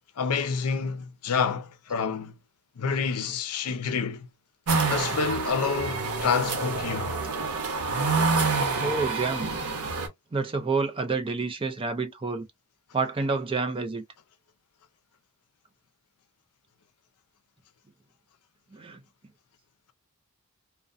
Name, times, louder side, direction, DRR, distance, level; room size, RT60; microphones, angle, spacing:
voice 1, 0.2-2.3 2.8-4.3 4.9-7.2, left 5 dB, 85° left, 0.5 m, -28 dB
sound 1, 4.7-10.1, right 4 dB, 90° right, 0.8 m, -27 dB
voice 2, 8.8-9.5 10.3-12.5 12.9-14.0 18.7-19.0, right 4 dB, 25° right, 0.4 m, -28 dB
2.5 x 2.1 x 2.4 m
head